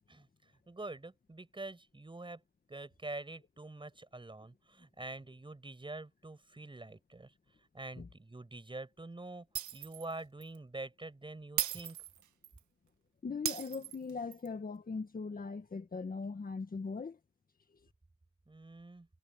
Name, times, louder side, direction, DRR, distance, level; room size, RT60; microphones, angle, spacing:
voice 1, 0.7-2.4 2.7-7.3 7.7-9.5 9.7-12.0 18.5-19.1, right 2 dB, 15° right, 6.2 m, -46 dB
Shatter, 9.6-10.1 10.4-10.6 11.6-12.6 13.5-14.5, right 11 dB, 75° right, 2.1 m, -37 dB
voice 2, 13.2-17.2, left 4 dB, 30° left, 1.9 m, -40 dB
cardioid pair, 90°, 30 cm